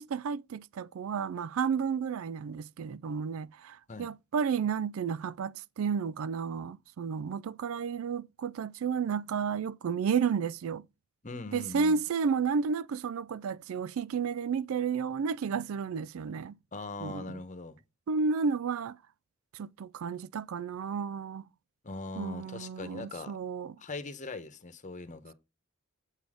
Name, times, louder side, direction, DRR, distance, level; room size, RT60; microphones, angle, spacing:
voice 1, 0.0-10.8 11.5-16.5 17.0-17.4 18.1-19.0 19.5-21.5 22.2-23.7, right 6 dB, 80° right, 0.4 m, -32 dB
voice 2, 11.2-12.0 16.7-17.8 21.8-23.4 23.8-25.3, left 3 dB, 35° left, 1.1 m, -41 dB
8.1 x 4.0 x 5.0 m
head